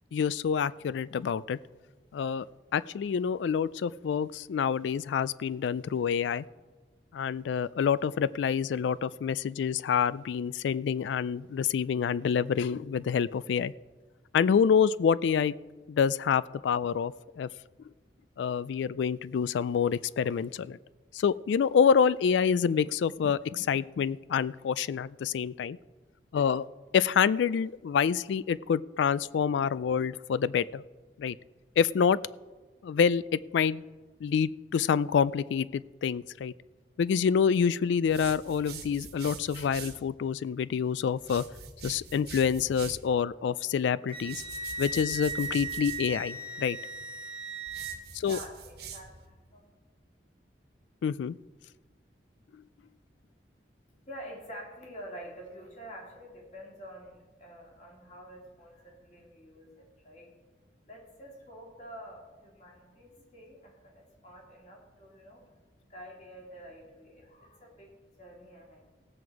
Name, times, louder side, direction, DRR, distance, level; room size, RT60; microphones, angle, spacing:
voice 1, 0.1-1.6 2.1-2.5 2.7-6.4 7.1-13.7 14.3-15.5 15.9-17.5 18.4-20.8 21.1-25.8 26.3-26.7 26.9-30.8 31.2-31.4 31.8-32.2 32.8-33.8 34.2-36.5 37.0-41.4 41.8-44.4 44.8-46.8 48.1-48.4 51.0-51.4, left 7 dB, 80° left, 19 dB, 0.3 m, -27 dB
sound 1, 38.0-40.0 41.2-43.1 44.2-46.0 47.7-49.3, right 6 dB, 60° right, 1.3 m, -44 dB
Wind instrument woodwind instrument, 44.1-48.0, right 3 dB, 30° right, 0.8 m, -37 dB
voice 2, 47.9-49.7 53.9-60.3 60.9-65.5 65.9-68.8, equal, 40° left, -1 dB, 2.7 m, -48 dB
17.0 x 7.8 x 4.7 m, 1.3 s
head